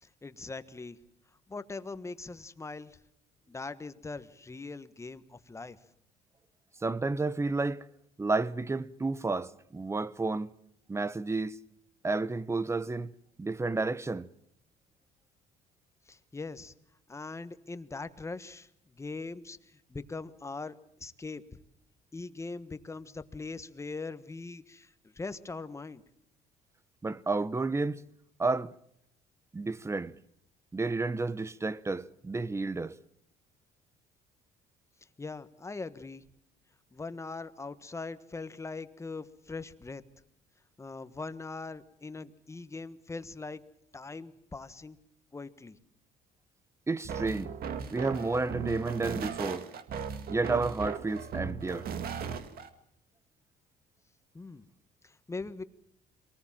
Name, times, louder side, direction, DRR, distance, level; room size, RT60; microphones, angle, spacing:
voice 1, 0.0-1.0 1.5-3.0 3.5-5.8 16.1-16.7 17.1-20.7 21.0-21.4 22.1-26.0 35.2-36.2 36.9-40.0 40.8-43.6 43.9-45.0 45.3-45.8 54.3-54.7 55.0-55.6, left 3 dB, 15° left, 1.3 m, -41 dB
voice 2, 6.8-7.8 8.2-10.5 10.9-11.6 12.0-13.1 13.4-14.3 27.0-28.0 28.4-28.7 29.5-30.1 30.7-32.9 46.9-47.5 47.9-49.7 50.3-51.9, right 3 dB, 15° right, 0.8 m, -31 dB
sound 1, 47.0-52.7, right 6 dB, 65° right, 1.9 m, -37 dB
24.0 x 19.0 x 7.4 m
cardioid pair, 110°, 17 cm